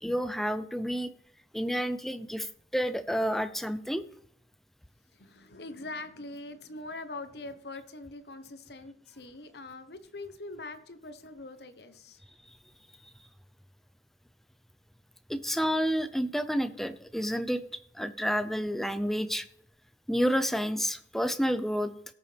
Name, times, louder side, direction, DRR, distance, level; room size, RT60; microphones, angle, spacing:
voice 1, 0.0-1.1 1.5-4.0 15.3-17.6 17.9-19.5 20.1-21.9, equal, ahead, 11 dB, 0.5 m, -29 dB
voice 2, 5.1-12.2, left 2 dB, 70° left, 10 dB, 1.1 m, -43 dB
17.5 x 6.9 x 3.4 m, 0.71 s
head